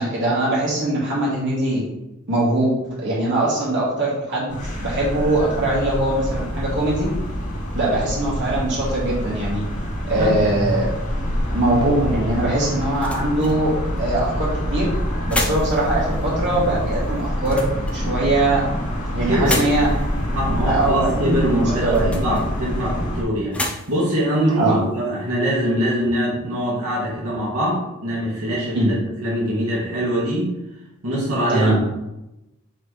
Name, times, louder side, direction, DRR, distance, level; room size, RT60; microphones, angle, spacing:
voice 1, 0.0-1.8 2.3-7.1 7.7-9.6 10.1-10.9 11.5-14.9 15.3-18.7 19.1-19.9 20.7-22.2 24.5-24.8 28.7-28.9 31.5-31.8, right 2 dB, 55° right, -6 dB, 2.5 m, -21 dB
sound 1, 4.5-23.2, equal, 35° left, 2.2 m, -26 dB
sound 2, 12.8-25.6, left 1 dB, 5° left, 0.6 m, -34 dB
voice 2, 19.2-19.6 20.3-28.9 29.2-30.5 31.0-31.8, equal, 90° right, -5 dB, 2.0 m, -23 dB
8.9 x 4.1 x 3.3 m, 0.94 s
head